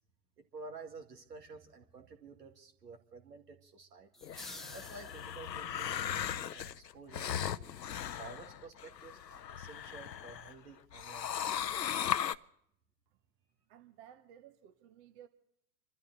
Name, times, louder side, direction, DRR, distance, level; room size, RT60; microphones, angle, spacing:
voice 1, 0.4-4.1 4.7-7.7 8.2-12.0, right 4 dB, 75° right, 2.1 m, -51 dB
sound 1, 4.1-5.7, left 1 dB, ahead, 0.6 m, -50 dB
sound 2, 4.2-10.5 10.9-12.3, left 9 dB, 85° left, 0.6 m, -38 dB
voice 2, 13.7-15.3, right 10 dB, 40° right, 1.0 m, -56 dB
27.0 x 13.0 x 3.9 m
figure-of-eight pair, 95°, 49 cm